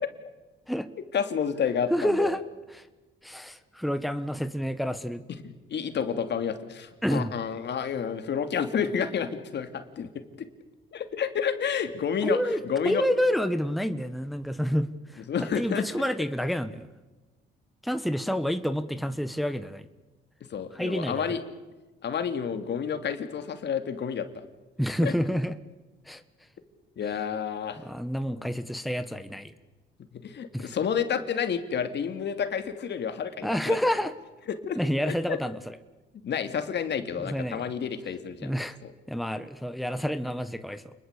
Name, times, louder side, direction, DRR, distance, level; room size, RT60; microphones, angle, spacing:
voice 1, 1.1-2.4 5.7-10.1 10.4-10.5 10.9-12.4 12.6-13.0 15.3-15.8 20.5-21.4 22.0-24.3 25.0-25.1 27.0-27.8 30.1-33.8 34.6-34.8 35.1-35.4 36.2-38.5 38.8-38.9, left 7 dB, 60° left, 8 dB, 2.8 m, -30 dB
voice 2, 1.9-2.4 2.7-2.9 3.2-5.2 7.0-7.3 12.2-16.9 17.8-19.9 20.7-21.4 24.8-25.5 26.0-26.2 27.8-29.5 30.5-30.7 33.4-34.1 34.7-35.8 37.2-37.7 38.4-38.8 39.1-40.9, equal, ahead, 10 dB, 1.4 m, -29 dB
28.5 x 21.5 x 8.4 m, 1.2 s
cardioid pair, 90°, 20 cm